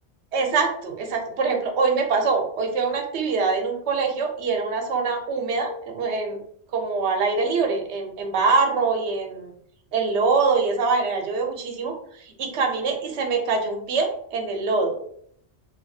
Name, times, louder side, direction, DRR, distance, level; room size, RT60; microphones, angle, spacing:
voice 1, 0.3-6.4 6.7-9.5 9.9-11.9 12.4-15.0, right 4 dB, 80° right, 3 dB, 0.8 m, -24 dB
2.3 x 2.3 x 2.6 m, 0.66 s
omnidirectional pair, 1.1 m